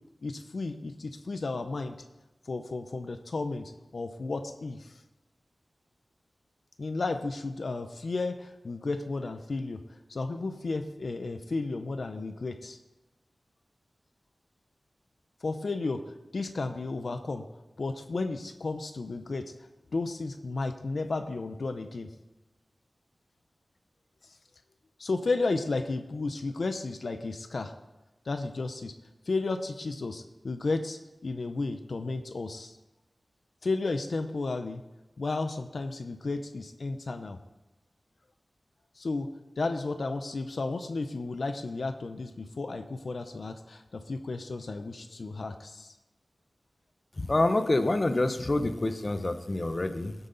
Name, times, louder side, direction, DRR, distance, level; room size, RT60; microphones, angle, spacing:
voice 1, 0.2-2.0 2.5-4.9 6.8-9.8 10.1-12.8 15.4-17.5 17.8-19.5 19.9-22.1 25.0-27.7 28.3-28.9 29.3-32.7 33.6-34.8 35.2-37.4 39.0-39.3 39.6-45.9, left 3 dB, 70° left, 8 dB, 0.7 m, -33 dB
voice 2, 47.2-50.1, left 2 dB, 40° left, 9 dB, 0.8 m, -27 dB
16.0 x 8.0 x 4.0 m, 1.0 s
wide cardioid pair, 65°, 0 cm